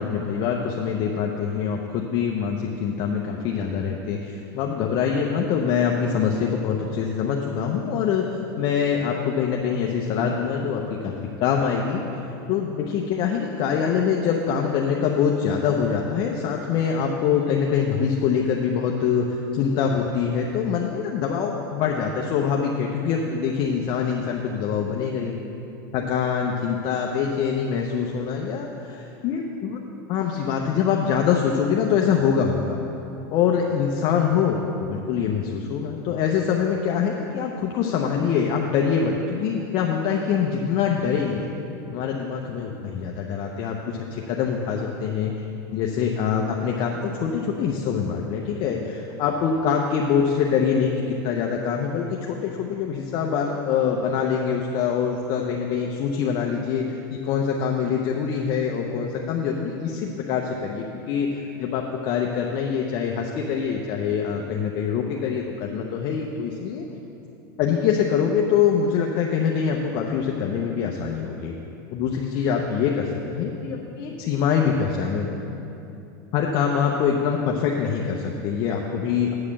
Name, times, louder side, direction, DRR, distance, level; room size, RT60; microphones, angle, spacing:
voice 1, 0.0-8.3 8.6-11.1 11.4-12.0 12.5-25.4 25.9-29.8 30.1-32.8 33.3-41.5 41.9-43.7 44.1-45.3 45.7-66.8 67.6-71.5 71.9-75.3 76.3-79.3, left 7 dB, 45° left, 0 dB, 0.7 m, -24 dB
8.3 x 4.9 x 7.3 m, 2.9 s
supercardioid pair, 135°, 12 cm